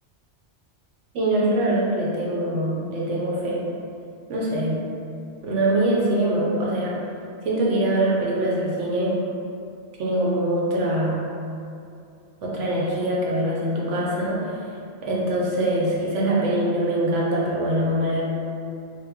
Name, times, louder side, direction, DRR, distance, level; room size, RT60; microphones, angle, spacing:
voice 1, 1.1-3.6 4.3-4.8 5.4-6.9 7.4-9.1 10.0-11.2 12.4-14.4 15.0-18.2, right 1 dB, 85° right, -4 dB, 1.0 m, -23 dB
4.0 x 2.0 x 3.4 m, 2.6 s
omnidirectional pair, 1.2 m